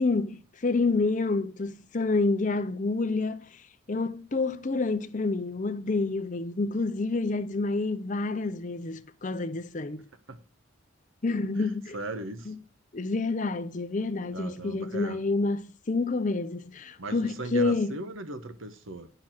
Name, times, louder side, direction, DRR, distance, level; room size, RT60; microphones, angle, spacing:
voice 1, 0.0-3.6 3.9-10.0 11.2-12.0 12.5-12.6 12.9-18.0, left 3 dB, 35° left, 0.6 m, -28 dB
voice 2, 11.6-12.5 14.3-15.2 17.0-19.1, right 2 dB, 75° right, 1.2 m, -38 dB
9.7 x 6.8 x 6.0 m
head